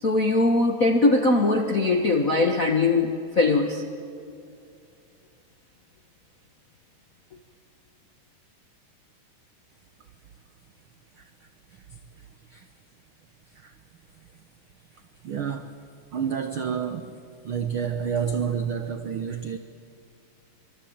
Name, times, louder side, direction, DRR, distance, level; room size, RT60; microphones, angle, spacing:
voice 1, 0.0-3.8, left 2 dB, 85° left, 3 dB, 0.7 m, -21 dB
voice 2, 15.2-15.8 16.1-19.6, right 7 dB, 90° right, 8 dB, 1.1 m, -29 dB
25.0 x 25.0 x 8.8 m, 2.4 s
omnidirectional pair, 3.9 m